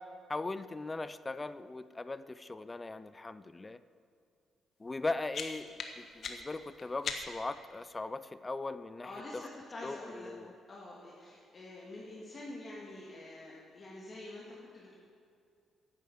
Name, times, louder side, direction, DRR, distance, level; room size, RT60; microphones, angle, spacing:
voice 1, 0.3-3.8 4.8-5.7 6.0-9.5 9.8-10.5, left 3 dB, 20° left, 14 dB, 0.5 m, -39 dB
sound 1, 4.9-7.6, left 5 dB, 55° left, 1.4 m, -42 dB
voice 2, 9.0-10.3 10.7-15.0, left 2 dB, 40° left, -5 dB, 2.3 m, -47 dB
10.5 x 9.2 x 8.7 m, 2.5 s
cardioid pair, 90°, 0 cm